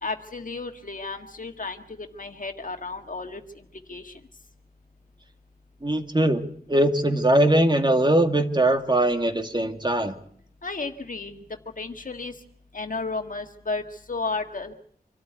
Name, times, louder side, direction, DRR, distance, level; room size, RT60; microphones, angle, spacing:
voice 1, 0.0-3.6 3.9-4.1 10.6-11.4 11.8-12.3 12.7-13.8 14.1-14.7, left 3 dB, 55° left, 5 dB, 1.8 m, -33 dB
voice 2, 5.8-6.4 6.7-10.1, right 1 dB, 30° right, 6 dB, 2.3 m, -21 dB
26.0 x 13.0 x 9.3 m, 0.63 s
wide cardioid pair, 55°, 16 cm